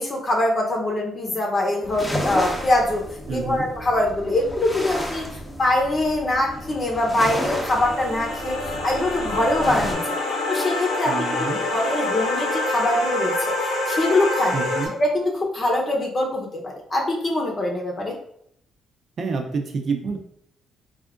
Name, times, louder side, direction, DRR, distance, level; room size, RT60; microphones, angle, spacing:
voice 1, 0.0-10.2 10.5-14.6 15.0-18.2, left 1 dB, 40° left, -1 dB, 0.9 m, -23 dB
sound 1, 1.8-9.9, equal, 5° left, 0.9 m, -32 dB
voice 2, 3.3-3.7 11.1-11.6 14.5-14.9 19.2-20.2, right 4 dB, 55° right, 4 dB, 0.7 m, -28 dB
sound 2, 6.4-14.9, left 2 dB, 90° left, 1.1 m, -27 dB
3.5 x 2.5 x 3.6 m, 0.69 s
cardioid pair, 90°, 0 cm